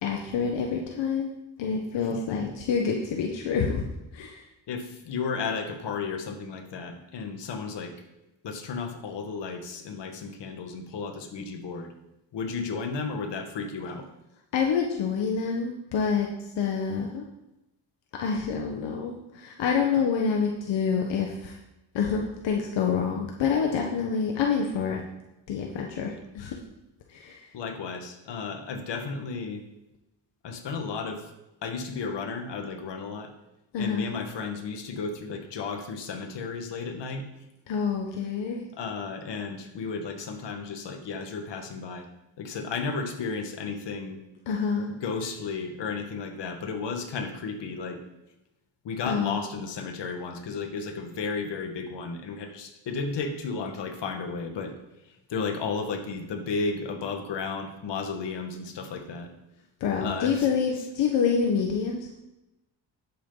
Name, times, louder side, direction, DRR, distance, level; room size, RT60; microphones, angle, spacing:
voice 1, 0.0-1.3 1.6-3.8 4.1-4.4 14.5-16.3 16.6-17.3 18.2-21.6 21.9-25.0 25.5-26.5 27.1-27.4 33.7-34.1 37.7-38.6 44.5-44.9 49.1-49.4 59.8-62.1, left 6 dB, 90° left, 1 dB, 1.3 m, -27 dB
voice 2, 2.1-2.5 4.7-8.0 8.4-11.9 12.3-14.1 27.5-29.6 30.4-31.3 31.6-33.3 33.8-37.2 38.7-42.1 42.4-44.2 45.0-48.0 48.8-54.8 55.3-59.3 60.0-60.5, left 4 dB, 70° left, 5 dB, 1.7 m, -33 dB
11.0 x 8.6 x 4.0 m, 0.94 s
cardioid pair, 120°, 43 cm